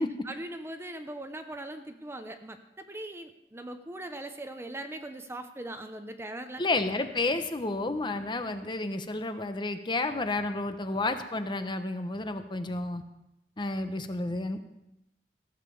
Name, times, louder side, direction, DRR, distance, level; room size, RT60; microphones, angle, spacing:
voice 1, 0.3-6.6, right 1 dB, 15° right, 8 dB, 0.7 m, -40 dB
voice 2, 6.6-13.0 13.6-14.6, left 2 dB, 25° left, 8 dB, 0.8 m, -31 dB
15.0 x 7.4 x 6.9 m, 0.87 s
head